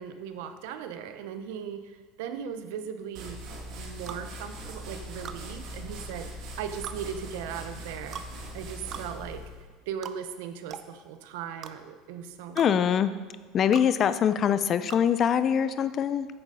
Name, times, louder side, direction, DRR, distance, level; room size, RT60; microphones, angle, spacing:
voice 1, 0.0-3.4 3.7-8.2 8.5-9.4 9.9-13.1, right 8 dB, 80° right, 9 dB, 0.7 m, -38 dB
sound 1, 3.1-9.7, equal, 55° right, 1.8 m, -41 dB
sound 2, 4.1-4.2 5.2-5.4 6.8-7.0 8.1-8.3 8.9-9.1 10.0-10.2 10.7-10.9 11.6-11.7 12.6-12.7 13.7-13.9 14.9-15.1, right 8 dB, 35° right, 0.5 m, -40 dB
voice 2, 12.6-13.1 13.5-16.3, left 8 dB, 35° left, 13 dB, 0.4 m, -23 dB
8.6 x 6.7 x 4.8 m, 1.5 s
cardioid pair, 145°, 0 cm